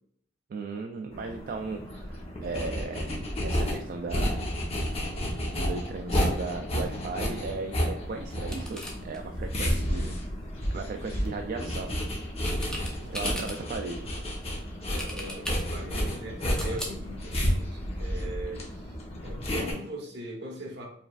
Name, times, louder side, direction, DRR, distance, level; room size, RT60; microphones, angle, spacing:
voice 1, 0.5-4.4 5.4-10.2 10.7-12.0 13.1-14.1, right 4 dB, 50° right, 4 dB, 0.3 m, -36 dB
sound 1, 1.1-19.7, equal, 35° left, 0.9 m, -31 dB
sound 2, 7.2-18.2, equal, 5° left, 0.7 m, -43 dB
voice 2, 12.5-13.7 14.8-18.9 19.2-20.9, right 1 dB, 65° right, 0 dB, 1.0 m, -41 dB
4.8 x 3.3 x 2.3 m, 0.64 s
head